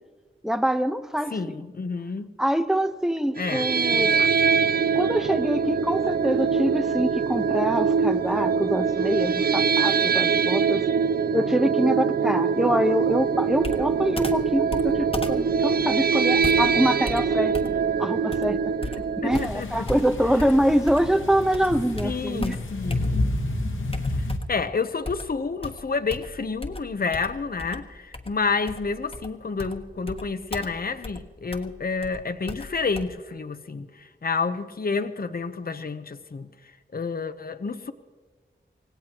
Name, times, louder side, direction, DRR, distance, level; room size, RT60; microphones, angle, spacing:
voice 1, 0.4-1.6 2.4-4.2 4.9-10.8 11.3-17.5 18.0-18.6 19.2-22.6, equal, ahead, 0.9 m, -25 dB
voice 2, 1.3-2.3 3.4-3.7 3.9-4.3 19.2-19.8 22.0-23.1 24.5-36.5 36.9-37.9, left 4 dB, 50° left, 0.8 m, -29 dB
sound 1, 3.4-19.5, right 6 dB, 50° right, 0.4 m, -23 dB
Computer keyboard, 13.6-21.2 21.5-23.4 23.9-24.7 25.0-33.0, left 2 dB, 30° left, 1.3 m, -37 dB
sound 2, 19.3-24.4, left 2 dB, 80° left, 1.3 m, -30 dB
25.5 x 17.0 x 3.0 m
cardioid pair, 45°, 20 cm